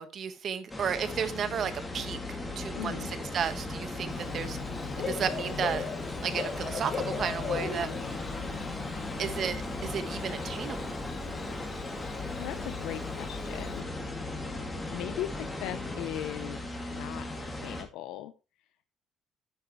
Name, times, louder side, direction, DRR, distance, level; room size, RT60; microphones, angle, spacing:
voice 1, 0.0-4.6 5.0-5.8 6.2-8.3 9.2-11.0, right 7 dB, 50° right, 1.3 m, -33 dB
sound 1, 0.7-17.8, left 2 dB, 15° left, 2.3 m, -37 dB
voice 2, 2.7-3.1 12.3-13.9 14.9-18.3, left 13 dB, 85° left, 0.6 m, -39 dB
Bird / Cricket, 4.1-13.8, left 5 dB, 45° left, 1.8 m, -38 dB
9.3 x 9.2 x 3.1 m
cardioid pair, 120°, 0 cm